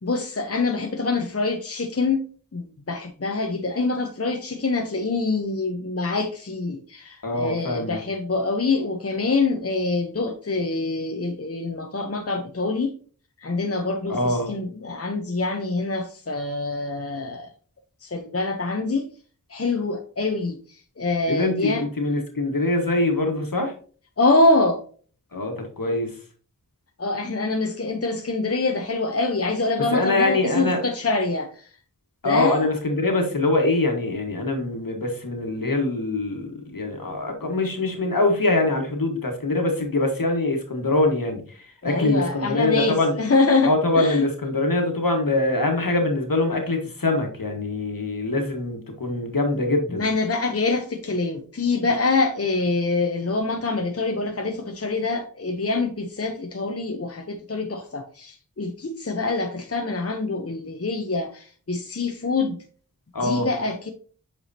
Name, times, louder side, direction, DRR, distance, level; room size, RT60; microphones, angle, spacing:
voice 1, 0.0-2.2 2.5-12.9 13.4-17.5 18.0-19.1 19.5-20.6 21.0-21.8 24.2-24.8 27.0-31.7 32.2-32.7 41.8-44.2 50.0-62.6 63.2-63.9, left 3 dB, 45° left, 0.9 m, -25 dB
voice 2, 7.2-8.0 14.1-14.5 21.3-23.7 25.3-26.2 29.9-30.8 32.2-43.1 43.6-50.1 63.1-63.5, left 2 dB, 75° left, 1.7 m, -23 dB
7.7 x 4.9 x 2.8 m
wide cardioid pair, 45°, 34 cm